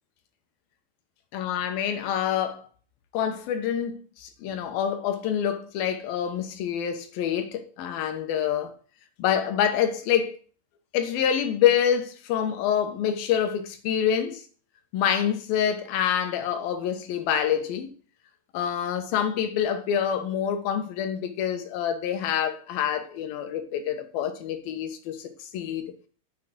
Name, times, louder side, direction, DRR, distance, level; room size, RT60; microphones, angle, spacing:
voice 1, 1.3-2.7 3.1-8.7 9.2-10.4 10.9-14.4 14.9-17.9 18.5-25.8, left 9 dB, 70° left, 2.8 m, -26 dB
7.3 x 6.5 x 7.7 m
omnidirectional pair, 4.7 m